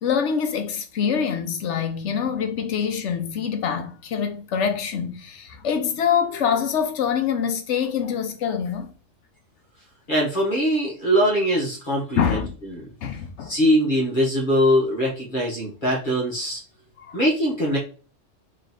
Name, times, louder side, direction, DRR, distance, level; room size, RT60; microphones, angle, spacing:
voice 1, 0.0-8.9 12.2-12.5 13.0-13.5 17.0-17.2, left 7 dB, 75° left, 1.0 m, -25 dB
voice 2, 10.1-12.4 12.8-12.9 13.5-16.6 17.1-17.8, equal, 45° left, 1.3 m, -22 dB
3.1 x 3.0 x 4.0 m
omnidirectional pair, 1.3 m